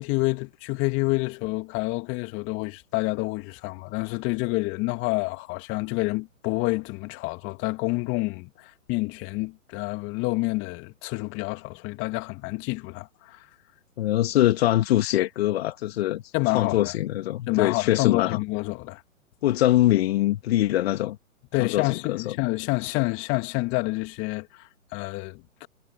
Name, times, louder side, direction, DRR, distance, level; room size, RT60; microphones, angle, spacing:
voice 1, 0.0-13.4 16.3-16.9 17.5-19.0 21.5-25.7, left 24 dB, 30° left, 2.8 m, -28 dB
voice 2, 14.0-16.2 16.5-18.4 19.4-21.2 21.6-22.3, left 14 dB, 45° left, 2.4 m, -23 dB
hypercardioid pair, 130°, 42 cm